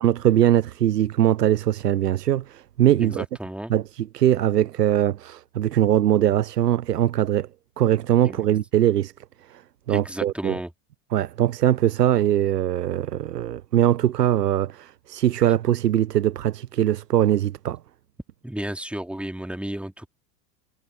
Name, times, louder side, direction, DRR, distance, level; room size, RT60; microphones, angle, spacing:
voice 1, 0.0-3.2 3.7-7.5 7.8-9.1 9.5-9.6 9.9-10.6 11.1-17.8, right 12 dB, 75° right, 0.8 m, -21 dB
voice 2, 3.0-3.7 8.2-8.6 9.9-10.7 18.4-20.1, right 1 dB, ahead, 2.9 m, -33 dB
figure-of-eight pair, 80°, 48 cm